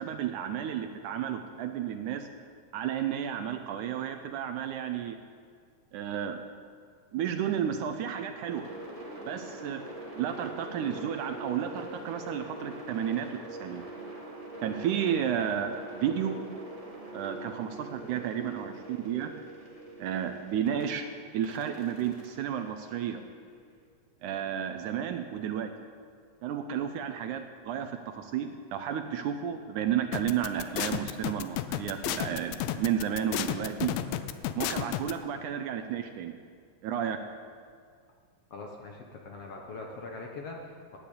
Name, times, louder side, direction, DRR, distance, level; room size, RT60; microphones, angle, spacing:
voice 1, 0.0-2.3 2.7-5.2 5.9-6.4 7.1-8.7 9.2-9.8 10.1-13.8 14.6-16.4 17.1-19.3 20.0-21.1 21.3-23.2 24.2-25.7 26.4-33.9 34.5-36.3 36.8-37.2, right 9 dB, 75° right, 7 dB, 2.0 m, -32 dB
sound 1, 8.4-20.8 21.4-23.6, right 2 dB, 15° right, 1.6 m, -43 dB
sound 2, 30.1-35.1, left 13 dB, 90° left, 2.4 m, -31 dB
voice 2, 38.5-41.0, left 3 dB, 60° left, 0 dB, 1.7 m, -42 dB
12.0 x 10.0 x 8.5 m, 2.1 s
omnidirectional pair, 4.0 m